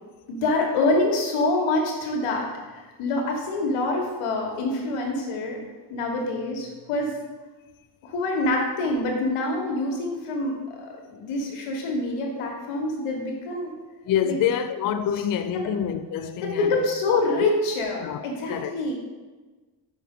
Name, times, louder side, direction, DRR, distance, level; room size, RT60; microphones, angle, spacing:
voice 1, 0.3-5.6 5.9-7.2 8.0-13.7 14.2-14.4 15.5-15.7 16.4-18.9, left 2 dB, 85° left, 1.5 m, -26 dB
voice 2, 14.1-16.8 17.3-17.4 18.0-18.2 18.5-18.7, left 9 dB, 45° left, 0.4 m, -26 dB
5.6 x 5.5 x 3.7 m
cardioid pair, 90°, 50 cm